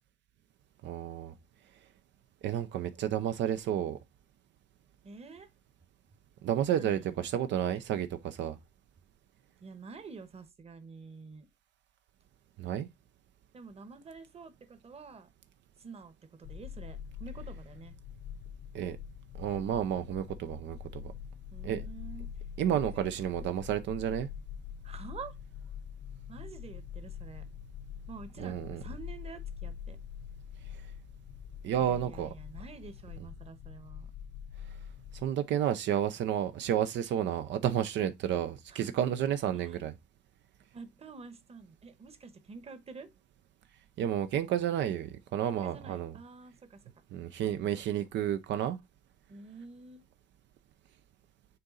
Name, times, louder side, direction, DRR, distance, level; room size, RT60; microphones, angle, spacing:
voice 1, 0.8-1.3 2.4-4.0 6.4-8.6 12.6-12.9 18.7-19.0 19.4-21.1 21.6-21.8 22.6-24.3 28.4-28.8 31.6-32.3 35.2-39.9 44.0-46.1 47.1-48.8, right 10 dB, 80° right, 0.7 m, -31 dB
voice 2, 5.0-5.5 6.8-7.3 9.6-11.5 13.5-15.3 15.8-16.1 16.4-18.0 21.5-22.3 22.7-23.1 24.8-25.3 26.3-27.4 28.1-30.0 31.7-34.1 38.7-38.9 39.5-39.8 40.7-43.1 45.4-46.8 49.3-50.1, right 4 dB, 35° right, 1.2 m, -48 dB
sound 1, 16.4-35.3, left 8 dB, 80° left, 0.7 m, -44 dB
6.8 x 3.9 x 3.9 m
cardioid pair, 125°, 18 cm